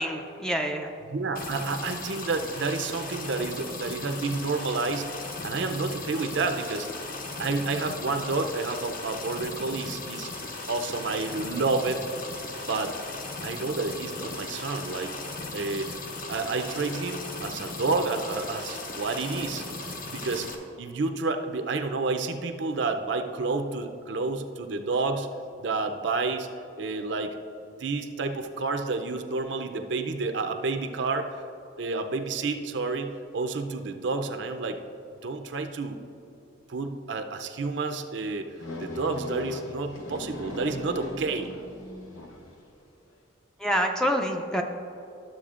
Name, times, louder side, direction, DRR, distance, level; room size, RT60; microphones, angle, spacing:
voice 1, 0.0-0.9 43.6-44.6, equal, 5° left, 3 dB, 0.4 m, -27 dB
voice 2, 1.1-5.1 5.4-6.9 7.4-10.3 10.7-12.0 12.6-13.0 13.4-15.1 15.5-15.9 16.3-19.6 20.1-20.5 20.8-25.3 25.6-26.5 26.8-27.4 27.8-31.3 31.8-34.8 35.2-36.0 36.7-38.5 38.8-41.5, right 3 dB, 60° right, 6 dB, 0.5 m, -30 dB
sound 1, 1.3-20.5, left 2 dB, 45° left, 0.8 m, -37 dB
sound 2, 38.6-42.6, left 2 dB, 85° left, 0.9 m, -38 dB
12.0 x 7.5 x 2.5 m, 2.7 s
head